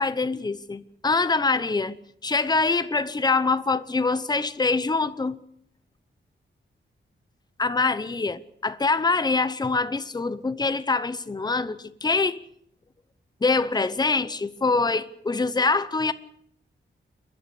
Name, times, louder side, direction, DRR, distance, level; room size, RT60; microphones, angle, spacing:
voice 1, 0.0-2.0 2.2-5.4 7.6-12.4 13.4-16.1, left 3 dB, 20° left, 0.8 m, -24 dB
28.5 x 11.5 x 8.4 m
wide cardioid pair, 155°, 20 cm